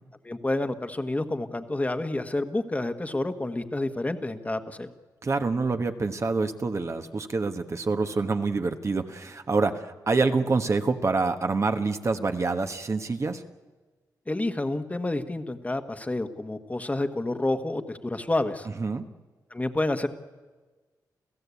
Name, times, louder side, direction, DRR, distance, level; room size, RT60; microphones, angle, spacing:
voice 1, 0.2-4.9 14.3-18.7 19.5-20.1, left 2 dB, 20° left, 7 dB, 1.5 m, -29 dB
voice 2, 5.2-13.4 18.8-19.0, right 3 dB, 40° right, 6 dB, 1.3 m, -26 dB
29.0 x 15.5 x 8.4 m, 1.3 s
cardioid pair, 85°, 7 cm